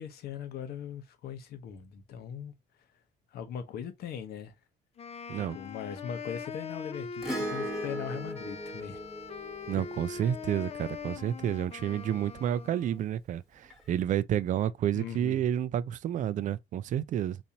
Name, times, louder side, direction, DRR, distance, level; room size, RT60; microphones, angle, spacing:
voice 1, 0.0-2.5 3.3-4.5 5.3-9.0 14.9-15.5, left 8 dB, 70° left, 0.9 m, -40 dB
Wind instrument woodwind instrument, 5.0-13.1, left 6 dB, 40° left, 0.6 m, -42 dB
Acoustic guitar / Strum, 7.2-11.8 13.7-13.8, right 1 dB, ahead, 1.3 m, -39 dB
voice 2, 9.7-17.4, right 10 dB, 50° right, 0.4 m, -30 dB
4.1 x 2.6 x 2.8 m
cardioid pair, 110°, 17 cm